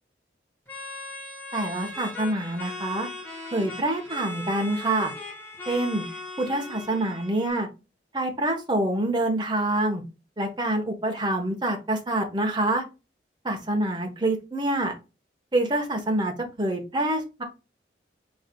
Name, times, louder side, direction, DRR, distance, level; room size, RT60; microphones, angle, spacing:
sound 1, 0.7-7.5, left 2 dB, 10° left, 1.8 m, -38 dB
voice 1, 1.5-3.1 3.5-5.1 5.7-6.0 6.4-7.7 8.1-10.0 10.4-12.8 13.4-14.9 15.5-17.4, right 1 dB, 25° right, 3 dB, 1.1 m, -26 dB
4.7 x 4.0 x 2.3 m, 0.28 s
head